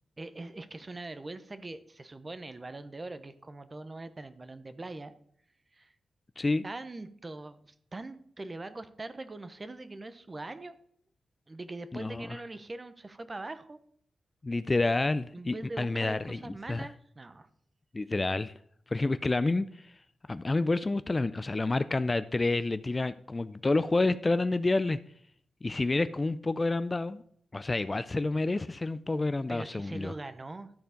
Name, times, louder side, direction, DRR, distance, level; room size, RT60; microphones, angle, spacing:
voice 1, 0.2-5.1 5.7-5.9 6.6-10.8 11.5-13.8 15.3-17.5 29.5-30.7, right 2 dB, 30° right, 0.8 m, -42 dB
voice 2, 11.9-12.4 14.4-16.9 17.9-18.5 18.9-19.9 20.3-25.0 25.6-27.2 27.5-30.1, left 2 dB, 25° left, 0.3 m, -29 dB
12.5 x 4.4 x 5.1 m
cardioid pair, 80°, 0 cm